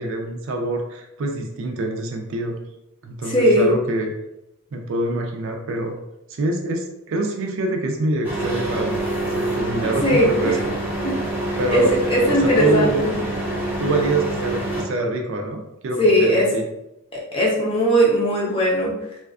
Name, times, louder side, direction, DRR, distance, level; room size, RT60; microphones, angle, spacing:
voice 1, 0.0-2.6 3.0-4.2 4.7-6.0 6.3-9.0 9.3-10.8 11.6-11.9 12.3-13.1 13.8-16.7, right 2 dB, 60° right, 3 dB, 0.4 m, -25 dB
voice 2, 3.2-3.7 10.0-10.5 11.0-11.1 11.7-13.1 16.0-16.5 17.1-18.9, equal, 25° left, -4 dB, 0.6 m, -18 dB
sound 1, 8.2-14.8, right 1 dB, 10° right, 0.7 m, -26 dB
2.4 x 2.3 x 2.3 m, 0.89 s
head